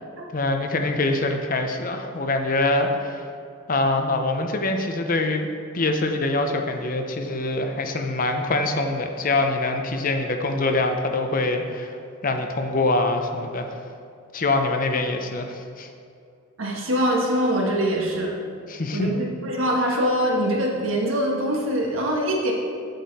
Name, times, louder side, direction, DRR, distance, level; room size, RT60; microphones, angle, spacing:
voice 1, 0.3-3.3 3.7-5.5 5.7-12.0 12.2-13.8 14.3-15.9 18.7-19.1, left 2 dB, 45° left, 5 dB, 0.7 m, -24 dB
voice 2, 16.6-18.3 18.9-22.5, equal, 75° right, -1 dB, 1.6 m, -23 dB
8.3 x 7.8 x 4.2 m, 2.4 s
head